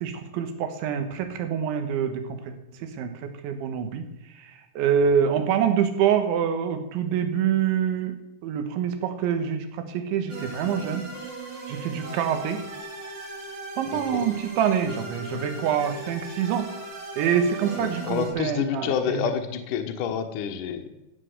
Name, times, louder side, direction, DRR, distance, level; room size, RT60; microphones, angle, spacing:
voice 1, 0.0-2.5 3.0-3.1 3.4-4.1 4.8-8.2 8.4-11.0 11.7-12.6 13.8-16.7 17.2-19.3, right 8 dB, 75° right, 7 dB, 3.6 m, -25 dB
sound 1, 10.3-18.3, right 2 dB, 40° right, 3.8 m, -38 dB
voice 2, 13.9-14.3 17.8-20.9, left 7 dB, 80° left, 5 dB, 1.8 m, -28 dB
15.0 x 7.4 x 8.1 m, 0.93 s
omnidirectional pair, 5.5 m